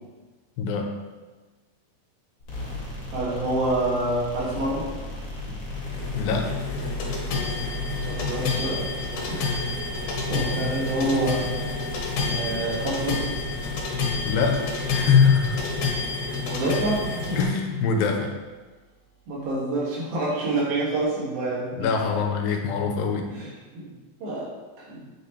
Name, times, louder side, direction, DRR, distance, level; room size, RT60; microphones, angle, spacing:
voice 1, 0.6-0.9 6.1-6.5 14.2-15.7 17.4-18.3 21.7-23.3, left 6 dB, 85° left, 3 dB, 2.6 m, -23 dB
sound 1, 2.4-19.5, equal, 35° left, 2.9 m, -37 dB
voice 2, 3.1-4.9 8.1-8.9 9.3-9.7 10.3-11.4 12.2-13.4 16.5-17.4 19.3-21.9 23.3-23.5 23.7-23.9 24.2-24.5 24.9-25.1, right 2 dB, 90° right, -6 dB, 4.4 m, -27 dB
sound 2, 5.7-17.4, left 4 dB, 65° left, 2.6 m, -29 dB
8.4 x 8.3 x 3.4 m, 1.3 s
omnidirectional pair, 4.0 m